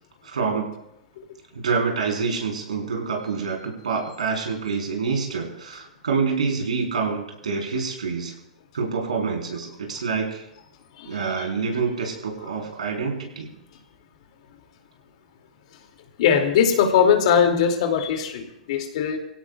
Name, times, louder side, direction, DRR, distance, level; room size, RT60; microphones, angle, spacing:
voice 1, 0.2-0.7 1.5-8.3 8.7-10.4 11.1-13.5, right 5 dB, 80° right, 0 dB, 4.3 m, -27 dB
voice 2, 11.0-11.5 13.7-13.8 16.2-19.2, left 7 dB, 60° left, 4 dB, 2.6 m, -21 dB
25.5 x 16.5 x 2.4 m, 0.83 s
hypercardioid pair, 105°, 4 cm